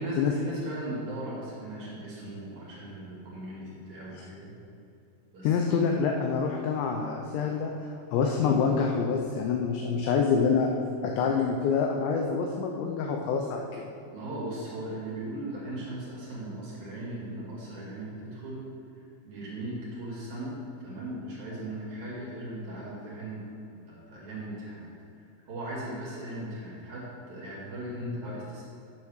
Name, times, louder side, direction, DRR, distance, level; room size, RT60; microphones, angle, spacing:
voice 1, 0.0-4.5 5.3-5.6 14.1-18.6 19.2-23.5 23.7-24.9 25.1-28.6, right 1 dB, 50° right, -6 dB, 2.8 m, -38 dB
voice 2, 5.4-7.7 8.1-10.7 11.0-13.9 28.0-28.2, left 5 dB, 80° left, 2 dB, 2.7 m, -26 dB
9.8 x 6.9 x 6.4 m, 2.6 s
omnidirectional pair, 5.8 m